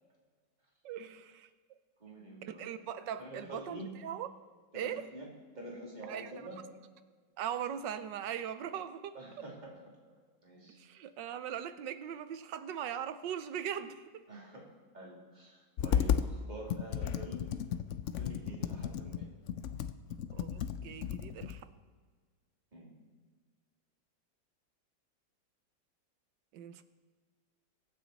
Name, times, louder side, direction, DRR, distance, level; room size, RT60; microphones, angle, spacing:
voice 1, 0.8-1.5 2.4-4.3 4.7-5.1 6.1-6.3 7.4-9.2 10.8-14.2 20.3-21.6 26.5-26.8, right 9 dB, 80° right, 12 dB, 1.4 m, -40 dB
voice 2, 2.0-2.7 3.0-4.0 4.7-5.3 5.5-6.7 9.1-9.8 10.1-10.8 14.3-14.7 14.9-17.7 18.1-19.3 22.7-22.9, right 1 dB, 25° right, -3 dB, 3.0 m, -47 dB
Computer keyboard, 15.8-16.3 16.7-21.6, left 8 dB, 70° left, 0.7 m, -34 dB
23.5 x 9.2 x 4.1 m, 1.5 s
omnidirectional pair, 1.9 m